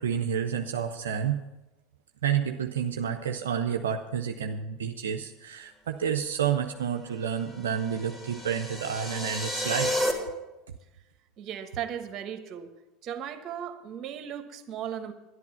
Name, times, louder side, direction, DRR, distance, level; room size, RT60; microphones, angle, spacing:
voice 1, 0.0-1.4 2.2-10.0, right 8 dB, 80° right, 4 dB, 0.6 m, -30 dB
sound 1, 7.5-10.1, equal, 15° left, 3.0 m, -31 dB
voice 2, 11.4-12.7 13.0-15.1, right 9 dB, 45° right, 8 dB, 1.3 m, -36 dB
11.0 x 11.0 x 5.6 m, 1.0 s
hypercardioid pair, 80°, 0 cm